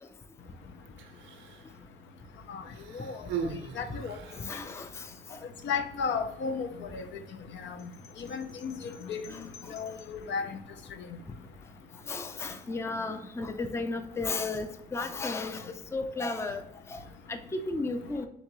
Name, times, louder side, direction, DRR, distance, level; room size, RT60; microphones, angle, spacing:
Human voice, 0.9-1.7 2.6-4.6 5.5-5.7, right 6 dB, 75° right, 0.6 m, -39 dB
voice 1, 3.8-4.2 5.6-7.0 7.5-7.8 8.2-9.2 9.7-10.6, left 5 dB, 70° left, 8 dB, 0.6 m, -34 dB
voice 2, 4.4-5.4 9.3-9.4 12.1-16.6 16.9-17.0 17.3-18.3, left 3 dB, 15° left, 9 dB, 0.4 m, -34 dB
sound 1, 7.8-10.3, left 5 dB, 35° left, 0.9 m, -55 dB
3.8 x 3.6 x 3.0 m, 0.82 s
cardioid pair, 90°, 20 cm